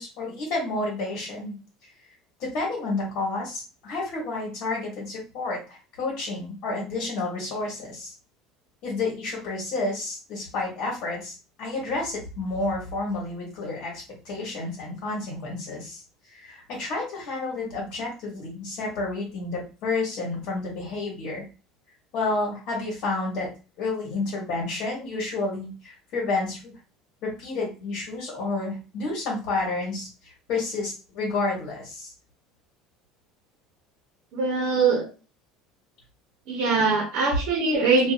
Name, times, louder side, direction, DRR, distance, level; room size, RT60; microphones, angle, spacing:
voice 1, 0.0-1.5 2.4-8.1 8.8-16.0 16.3-21.4 22.1-23.5 23.8-26.7 27.2-32.1, left 3 dB, 50° left, -3 dB, 1.2 m, -30 dB
voice 2, 34.3-35.1 36.5-38.1, right 4 dB, 55° right, -2 dB, 0.9 m, -22 dB
2.6 x 2.4 x 2.5 m, 0.33 s
cardioid pair, 165°, 0 cm